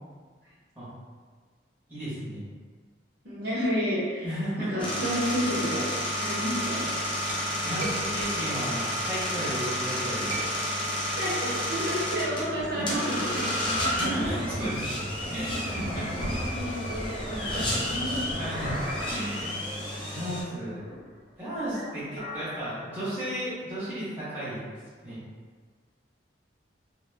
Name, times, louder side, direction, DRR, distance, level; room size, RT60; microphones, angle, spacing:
voice 1, 1.9-2.5 4.2-4.9 7.5-10.4 12.6-13.2 13.6-15.0 15.3-16.5 17.4-17.6 17.9-18.0 18.4-18.7 19.1-19.6 20.1-20.8 21.4-24.7 25.0-25.2, equal, 10° right, -12 dB, 0.8 m, -34 dB
voice 2, 3.2-4.3 4.6-5.8 6.2-6.8 11.1-13.4 13.8-14.3 15.8-18.2 20.5-20.7, equal, 55° right, -8 dB, 0.8 m, -31 dB
sound 1, 4.8-20.4, equal, 25° left, 0.4 m, -31 dB
Chink clink, 7.2-9.6 10.0-11.1 11.4-15.5, right 2 dB, 40° right, 0.4 m, -42 dB
sound 2, 13.6-20.1 20.5-21.3 21.7-23.4, equal, 40° left, 0.8 m, -37 dB
2.1 x 2.1 x 3.2 m, 1.5 s
head